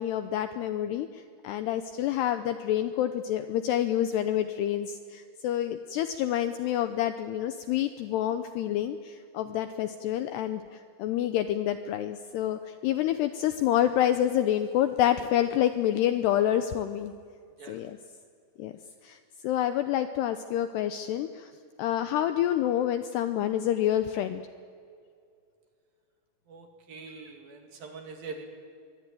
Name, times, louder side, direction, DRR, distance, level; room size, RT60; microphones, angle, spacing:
voice 1, 0.0-17.1 17.7-18.0 18.6-18.7 19.0-19.2 19.4-21.5 21.8-24.4, left 11 dB, 80° left, 9 dB, 2.5 m, -28 dB
voice 2, 26.5-28.5, right 4 dB, 55° right, 4 dB, 3.6 m, -43 dB
25.0 x 23.5 x 9.2 m, 2.3 s
omnidirectional pair, 5.6 m